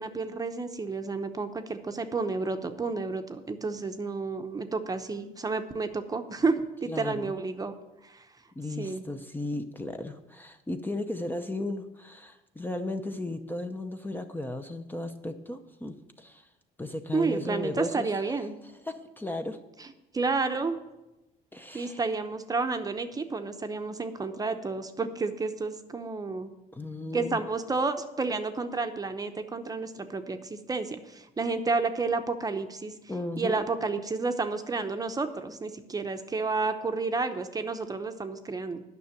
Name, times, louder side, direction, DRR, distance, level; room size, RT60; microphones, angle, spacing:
voice 1, 0.0-7.7 8.0-8.2 8.8-9.0 17.1-18.6 19.8-19.9 20.1-20.8 21.7-26.5 27.1-32.9 33.4-38.8, right 4 dB, 20° right, 7 dB, 0.8 m, -31 dB
voice 2, 6.9-7.4 8.6-16.5 16.8-18.4 18.7-19.6 21.5-22.0 26.7-27.4 33.1-33.7, left 2 dB, 10° left, 7 dB, 0.7 m, -35 dB
9.4 x 6.2 x 8.2 m, 0.99 s
cardioid pair, 110°, 17 cm